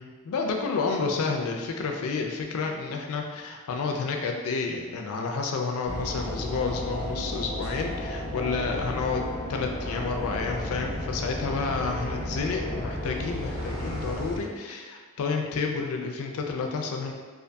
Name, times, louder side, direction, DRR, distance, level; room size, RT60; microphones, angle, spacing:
voice 1, 0.0-17.1, left 4 dB, 80° left, 2 dB, 0.3 m, -30 dB
sound 1, 5.8-14.4, left 1 dB, 70° right, 1.1 m, -33 dB
2.5 x 2.4 x 2.2 m, 1.4 s
head